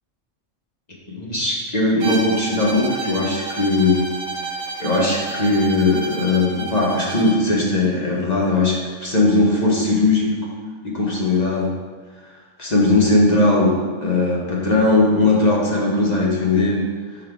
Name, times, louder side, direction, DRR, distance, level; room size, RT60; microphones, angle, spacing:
voice 1, 1.0-4.1 4.4-4.5 4.8-10.4 10.8-11.8 12.6-16.9, left 2 dB, 35° left, -3 dB, 1.0 m, -19 dB
Bowed string instrument, 2.0-7.5, right 3 dB, 85° right, 1.1 m, -30 dB
5.2 x 3.9 x 4.6 m, 1.4 s
omnidirectional pair, 1.4 m